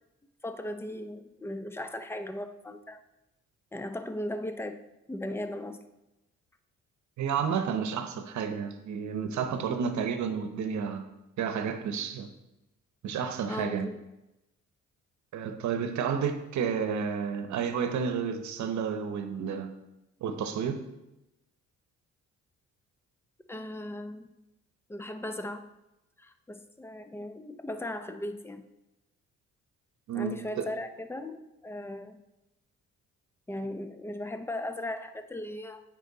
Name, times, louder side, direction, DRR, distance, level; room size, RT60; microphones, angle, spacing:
voice 1, 0.4-3.0 3.7-4.8 5.1-5.8 9.7-9.8 13.5-14.0 23.5-24.3 24.9-25.7 26.2-28.6 30.1-32.2 33.5-35.8, left 1 dB, 10° left, 9 dB, 0.6 m, -37 dB
voice 2, 7.2-11.1 11.4-12.3 13.0-13.9 15.3-19.7 20.2-20.8 30.1-30.6, right 7 dB, 70° right, 8 dB, 0.9 m, -31 dB
8.3 x 5.3 x 3.9 m, 0.94 s
cardioid pair, 90°, 30 cm